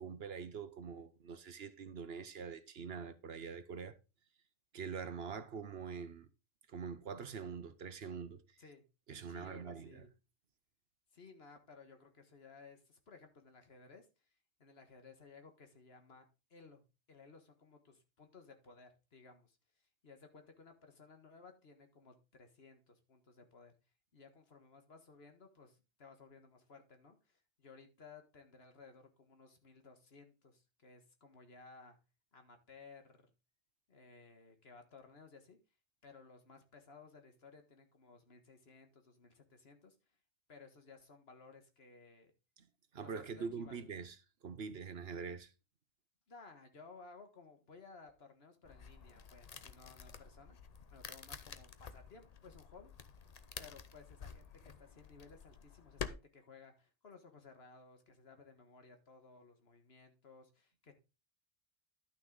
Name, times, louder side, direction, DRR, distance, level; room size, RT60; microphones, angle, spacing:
voice 1, 0.0-4.0 4.7-6.3 6.7-8.4 9.1-10.0 42.6-42.7 42.9-44.2 44.4-45.5, right 6 dB, 65° right, 1.1 m, -44 dB
voice 2, 9.3-10.1 11.1-16.2 16.5-16.8 17.1-23.7 24.1-32.0 32.3-33.3 33.9-35.6 36.0-40.0 40.5-42.3 43.0-43.9 46.3-50.6 50.9-52.9 53.6-60.9, left 4 dB, 60° left, 1.7 m, -58 dB
sound 1, 48.6-56.1, left 6 dB, 40° left, 0.7 m, -50 dB
11.5 x 6.2 x 3.9 m
omnidirectional pair, 1.2 m